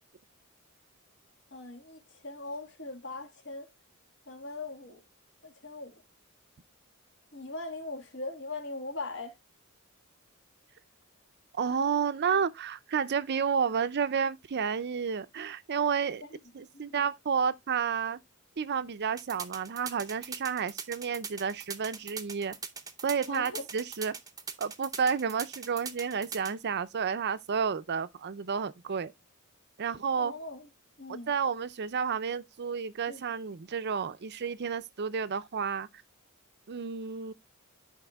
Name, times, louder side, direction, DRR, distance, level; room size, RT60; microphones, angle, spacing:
voice 1, 1.5-3.7 4.3-5.0 5.4-6.0 7.3-9.4 16.7-17.1 23.3-23.6 30.2-30.7 31.0-31.3 33.1-33.2, left 2 dB, 60° left, 1.7 m, -40 dB
voice 2, 11.5-16.2 16.5-18.2 18.6-22.6 23.0-24.1 24.6-29.1 29.8-30.3 31.1-36.0 36.7-37.3, right 6 dB, 50° right, 0.5 m, -31 dB
sound 1, 19.2-26.5, right 6 dB, 15° right, 0.7 m, -40 dB
13.5 x 4.7 x 2.3 m
head